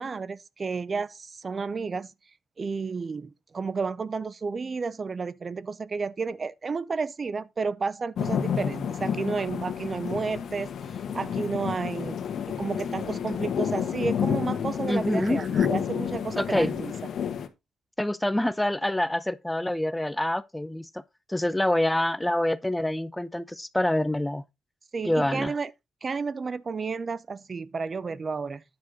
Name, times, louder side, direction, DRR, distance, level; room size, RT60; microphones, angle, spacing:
voice 1, 0.0-2.1 2.6-10.7 11.1-12.2 12.5-16.9 24.9-25.7 26.0-28.6, right 4 dB, 35° right, 0.5 m, -31 dB
sound 1, 8.2-17.5, left 8 dB, 60° left, 1.4 m, -30 dB
voice 2, 14.9-15.4 16.4-16.8 18.0-20.9 21.3-24.4 25.0-25.5, left 1 dB, 10° left, 0.6 m, -26 dB
9.6 x 6.5 x 4.0 m
cardioid pair, 90°, 0 cm